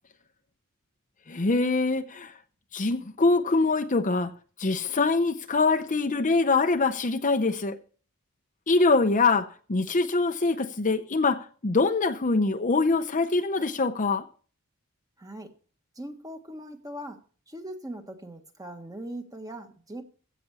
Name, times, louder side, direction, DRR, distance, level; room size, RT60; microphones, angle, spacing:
voice 1, 1.3-2.4 2.7-7.8 8.7-14.3, left 3 dB, 35° left, 0.7 m, -24 dB
voice 2, 15.2-15.5 15.9-20.0, right 1 dB, 15° right, 1.4 m, -40 dB
16.0 x 6.0 x 7.0 m
head